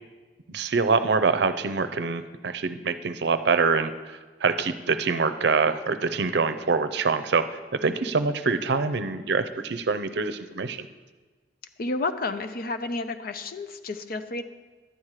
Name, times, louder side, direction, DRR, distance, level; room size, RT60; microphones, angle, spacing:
voice 1, 0.5-3.9 4.4-10.8, right 4 dB, 70° right, 11 dB, 0.6 m, -25 dB
voice 2, 11.8-14.4, left 3 dB, 55° left, 10 dB, 0.6 m, -31 dB
11.5 x 8.9 x 4.8 m, 1.3 s
head